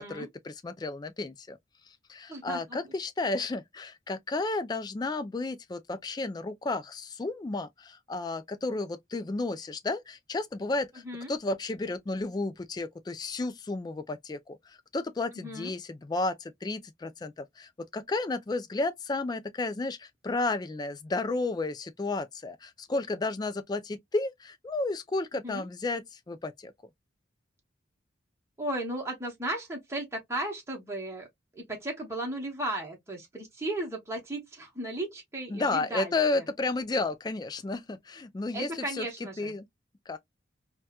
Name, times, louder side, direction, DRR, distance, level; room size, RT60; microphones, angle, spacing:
voice 1, 0.0-1.6 2.1-11.0 11.3-26.7 35.5-39.1 39.4-39.7 40.1-40.2, left 3 dB, 20° left, 0.3 m, -32 dB
voice 2, 2.3-2.8 11.0-11.3 15.3-15.7 25.4-25.7 28.6-31.3 31.5-36.4 38.5-39.5, right 1 dB, 15° right, 1.0 m, -35 dB
4.1 x 2.2 x 2.3 m
head